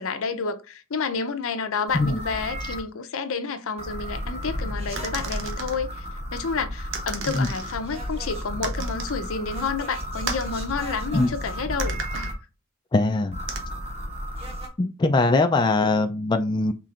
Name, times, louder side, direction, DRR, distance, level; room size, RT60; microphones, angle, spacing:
voice 1, 0.0-12.3, left 5 dB, 65° left, 0.6 m, -30 dB
sound 1, 1.9-2.8 3.8-12.3 13.3-14.7, equal, 25° right, 1.3 m, -33 dB
sound 2, 5.0-5.8 6.9-7.8 8.6-9.2 10.3-10.5 11.8-12.3 13.5-13.6, right 5 dB, 60° right, 0.9 m, -34 dB
voice 2, 12.9-13.4 14.8-16.7, left 2 dB, 20° left, 0.3 m, -21 dB
5.8 x 3.8 x 2.4 m
head